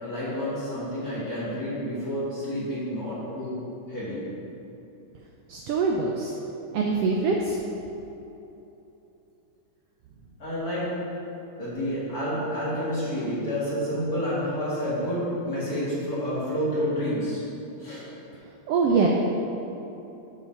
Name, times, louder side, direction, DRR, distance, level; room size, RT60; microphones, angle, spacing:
voice 1, 0.0-3.6 3.9-4.2 10.4-10.9 11.6-17.4 17.8-18.0, equal, 35° left, -9 dB, 2.0 m, -29 dB
voice 2, 5.5-6.3 6.7-7.6 18.7-19.1, right 4 dB, 80° right, 0 dB, 1.4 m, -23 dB
7.3 x 4.8 x 5.8 m, 3.0 s
omnidirectional pair, 3.3 m